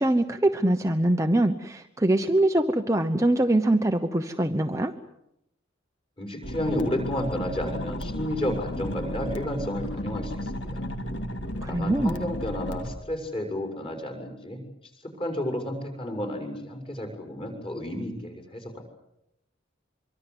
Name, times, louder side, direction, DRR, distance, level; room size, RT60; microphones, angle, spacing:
voice 1, 0.0-4.9 11.6-12.1, right 1 dB, 15° right, 5 dB, 0.9 m, -23 dB
voice 2, 6.2-10.8 11.7-14.6 15.0-18.8, left 1 dB, 25° left, 3 dB, 6.4 m, -31 dB
sound 1, 6.4-12.9, equal, 60° left, 2.1 m, -34 dB
26.0 x 24.0 x 8.2 m, 0.83 s
head